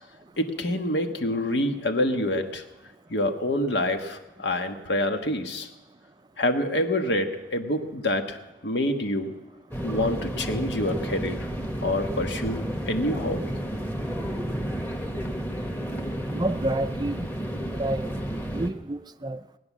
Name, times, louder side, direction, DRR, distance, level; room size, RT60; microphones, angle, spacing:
voice 1, 0.4-2.6 3.1-5.7 6.4-9.4 9.8-11.5 11.8-13.4, left 1 dB, 65° left, 6 dB, 1.4 m, -27 dB
sound 1, 9.7-18.7, equal, 10° left, 1.4 m, -31 dB
voice 2, 16.3-17.3 17.6-18.1 18.5-19.4, right 2 dB, 25° right, 11 dB, 0.5 m, -29 dB
19.0 x 9.6 x 7.3 m, 1.1 s
head